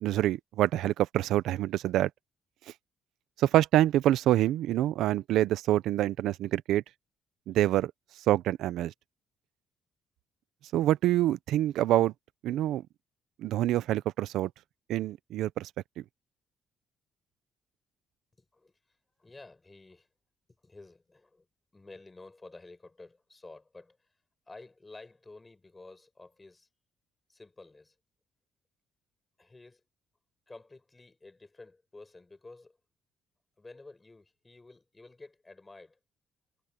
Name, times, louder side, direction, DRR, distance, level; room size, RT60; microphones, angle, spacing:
voice 1, 0.0-2.1 3.4-6.8 7.5-7.9 8.3-8.9 10.7-12.1 12.4-12.8 13.4-14.5 14.9-15.7, right 13 dB, 75° right, 0.6 m, -26 dB
voice 2, 18.4-20.1 20.6-21.5 21.7-24.1 24.5-26.7 27.3-28.0 29.4-29.8 30.5-32.8 33.6-36.0, left 3 dB, 15° left, 5.6 m, -51 dB
cardioid pair, 165°, 0 cm